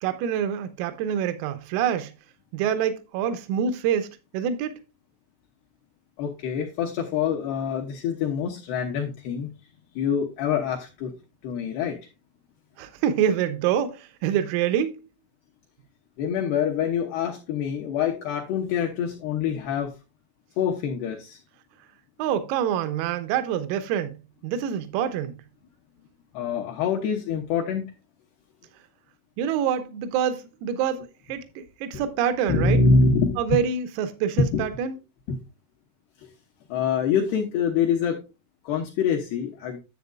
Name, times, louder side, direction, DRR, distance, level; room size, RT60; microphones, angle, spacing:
voice 1, 0.0-2.1 2.5-4.1 4.3-4.8 12.8-15.0 22.2-24.2 24.4-25.3 29.4-32.8 33.4-35.0, right 8 dB, 85° right, 3.4 m, -26 dB
voice 2, 6.2-9.5 10.0-11.1 11.4-12.0 16.2-19.9 20.6-21.4 26.3-27.9 31.9-32.0 32.5-33.4 34.4-34.6 35.3-35.4 36.7-38.2 38.7-39.8, left 5 dB, 75° left, 2.5 m, -25 dB
10.5 x 7.9 x 2.3 m
omnidirectional pair, 5.9 m